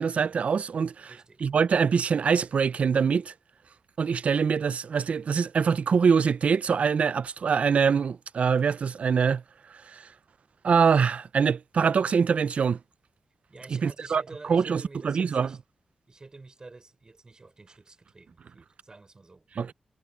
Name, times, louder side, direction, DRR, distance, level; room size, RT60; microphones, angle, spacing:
voice 1, 0.0-1.1 1.4-3.3 4.0-9.4 9.7-10.1 10.6-12.8 13.7-15.6 19.6-19.7, right 6 dB, 65° right, 0.4 m, -24 dB
voice 2, 1.0-1.5 13.5-15.6 16.1-19.5, right 3 dB, 35° right, 5.8 m, -49 dB
wide cardioid pair, 120°, 2 cm